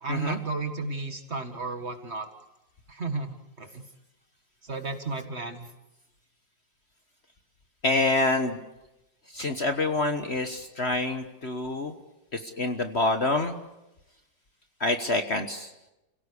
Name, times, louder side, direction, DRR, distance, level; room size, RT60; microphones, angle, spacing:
voice 1, 0.0-2.3 2.9-3.8 4.6-5.7, right 3 dB, 35° right, 7 dB, 2.2 m, -33 dB
voice 2, 7.8-8.6 9.3-11.9 12.3-13.6 14.8-15.7, left 2 dB, 40° left, 7 dB, 1.4 m, -27 dB
30.0 x 17.0 x 8.4 m, 0.95 s
omnidirectional pair, 1.9 m